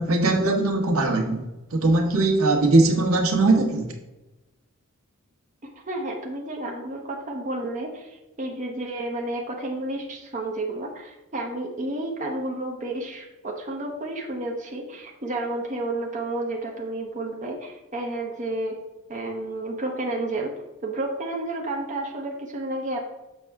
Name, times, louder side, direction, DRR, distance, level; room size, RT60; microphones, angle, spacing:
voice 1, 0.0-1.4 1.7-3.9, right 2 dB, 75° right, 2 dB, 1.3 m, -20 dB
voice 2, 5.6-18.8 19.1-20.5 20.8-23.0, right 2 dB, 35° right, 0 dB, 0.9 m, -31 dB
7.1 x 5.6 x 3.5 m, 1.1 s
head